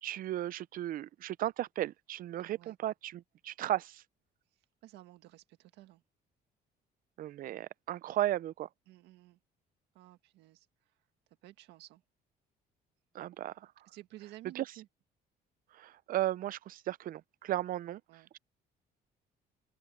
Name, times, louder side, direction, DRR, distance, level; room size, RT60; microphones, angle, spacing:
voice 1, 0.0-4.0 7.2-8.7 13.1-13.7 14.6-14.7 15.7-18.0, right 13 dB, 55° right, 0.5 m, -35 dB
voice 2, 4.5-6.0 8.9-9.4 9.9-11.0 11.4-12.0 13.9-14.9 18.1-18.3, right 15 dB, 85° right, 1.9 m, -54 dB
open air
cardioid pair, 110°, 17 cm